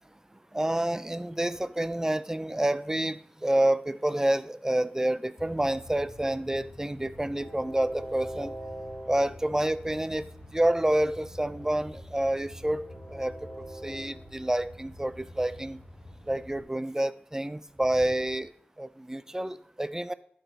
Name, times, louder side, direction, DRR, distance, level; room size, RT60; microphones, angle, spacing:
voice 1, 0.5-8.5 9.1-10.2 10.5-13.3 13.8-15.8 16.3-18.5 18.8-20.1, right 1 dB, 15° right, 0.4 m, -28 dB
Train, 5.4-16.6, equal, 50° left, 2.6 m, -44 dB
11.5 x 4.0 x 3.3 m
wide cardioid pair, 60°, 4 cm